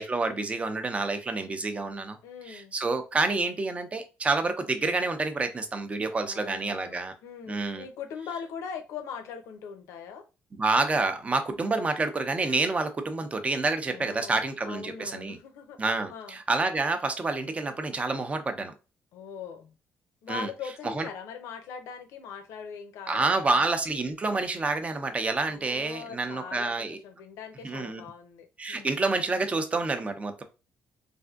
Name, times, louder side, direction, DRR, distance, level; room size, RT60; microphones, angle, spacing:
voice 1, 0.0-2.2 2.4-7.1 7.5-7.8 10.5-15.4 15.8-18.7 20.3-20.5 20.9-21.1 23.1-27.0 27.6-28.0 28.6-30.4, right 3 dB, 25° right, 0.6 m, -28 dB
voice 2, 2.2-2.7 6.2-10.2 11.5-11.8 13.9-15.8 16.1-16.4 19.1-19.7 20.2-23.7 25.5-29.0, left 6 dB, 90° left, 0.6 m, -41 dB
3.4 x 2.6 x 2.3 m
cardioid pair, 90°, 5 cm